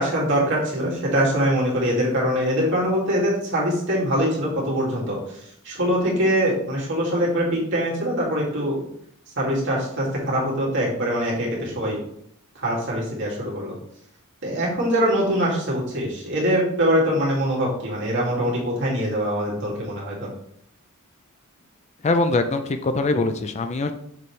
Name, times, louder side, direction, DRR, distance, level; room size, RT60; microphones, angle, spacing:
voice 1, 0.0-5.4 5.6-8.8 9.4-12.0 12.6-13.8 14.4-20.3, equal, 55° right, -4 dB, 2.3 m, -23 dB
voice 2, 22.0-23.9, left 3 dB, 30° left, 8 dB, 0.4 m, -22 dB
6.7 x 5.3 x 3.2 m, 0.71 s
head